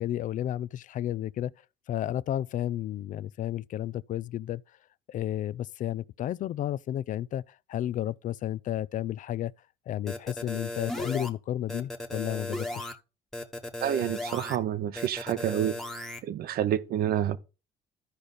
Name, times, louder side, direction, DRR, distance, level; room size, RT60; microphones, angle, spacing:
voice 1, 0.0-1.5 1.9-4.6 5.1-9.5 9.9-13.0, left 12 dB, 50° left, 0.4 m, -32 dB
sound 1, 10.1-11.3 11.7-12.9 13.3-14.6 15.0-16.2, left 1 dB, ahead, 1.1 m, -36 dB
voice 2, 13.8-15.8 16.2-17.4, right 11 dB, 65° right, 0.8 m, -28 dB
13.0 x 5.1 x 4.1 m
cardioid pair, 110°, 17 cm